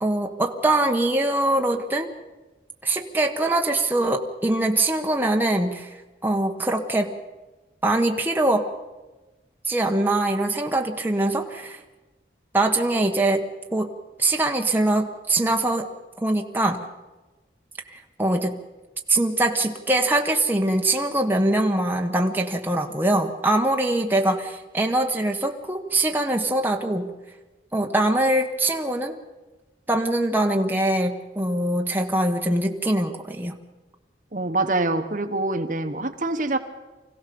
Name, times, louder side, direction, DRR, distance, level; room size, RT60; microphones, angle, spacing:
voice 1, 0.0-2.1 2.8-6.0 6.2-7.1 7.8-8.7 9.6-11.8 12.5-13.9 14.2-15.9 16.2-16.8 17.9-18.6 19.1-27.1 27.7-29.2 29.9-33.6, right 1 dB, 10° right, 2 dB, 1.1 m, -23 dB
voice 2, 34.3-36.6, right 2 dB, 45° right, 7 dB, 1.2 m, -25 dB
25.5 x 16.0 x 6.9 m, 1.2 s
head